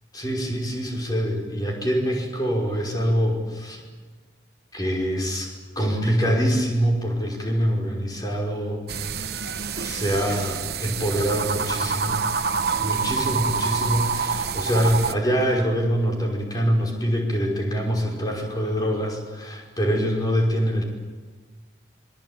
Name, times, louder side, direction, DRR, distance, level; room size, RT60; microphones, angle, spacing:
voice 1, 0.1-3.8 4.7-5.5 5.8-8.8 9.8-12.2 12.8-20.8, equal, 20° left, 0 dB, 5.5 m, -24 dB
sound 1, 8.9-15.1, right 5 dB, 55° right, 1.1 m, -27 dB
26.5 x 24.5 x 8.9 m, 1.4 s
head